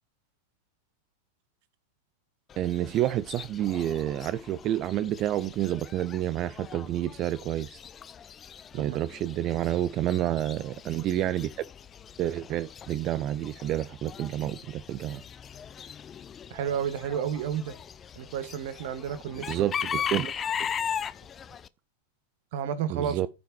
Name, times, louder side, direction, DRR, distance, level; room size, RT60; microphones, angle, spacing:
Chicken rooster / Bird, 2.5-21.7, left 8 dB, 25° left, 0.6 m, -39 dB
voice 1, 2.6-7.8 8.7-11.5 12.2-15.2 19.5-20.3 22.9-23.3, right 12 dB, 35° right, 0.5 m, -29 dB
voice 2, 16.5-17.7 18.1-19.7 22.5-23.2, right 8 dB, 50° right, 1.6 m, -31 dB
14.5 x 5.8 x 4.6 m
figure-of-eight pair, 90°, 0 cm